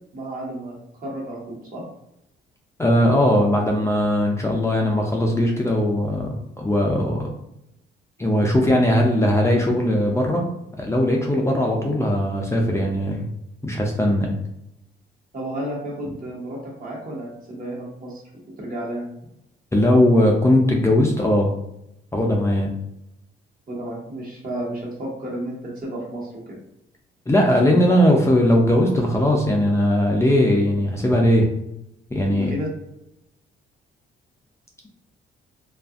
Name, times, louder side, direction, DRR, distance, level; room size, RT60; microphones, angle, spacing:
voice 1, 0.1-1.8 15.3-18.2 18.6-19.1 23.7-26.6 32.3-32.7, right 1 dB, 45° right, -3 dB, 1.2 m, -32 dB
voice 2, 2.8-7.3 8.2-10.4 10.8-13.3 13.6-14.4 19.7-21.5 22.1-22.7 27.3-31.4 32.1-32.5, left 1 dB, 15° left, -1 dB, 0.4 m, -19 dB
2.6 x 2.4 x 2.4 m, 0.83 s
cardioid pair, 90°, 20 cm